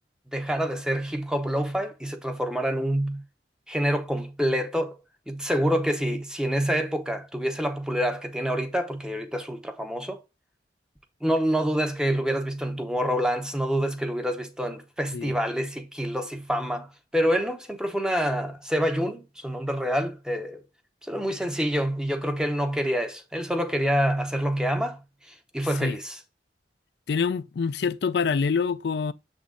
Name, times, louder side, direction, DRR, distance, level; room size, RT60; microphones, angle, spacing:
voice 1, 0.3-3.2 3.7-4.9 5.3-10.2 11.2-16.9 17.1-20.6 21.0-25.0 25.5-26.2, equal, 5° right, 0.7 m, -27 dB
voice 2, 27.1-29.1, left 5 dB, 65° left, 0.4 m, -26 dB
7.1 x 3.7 x 3.8 m
head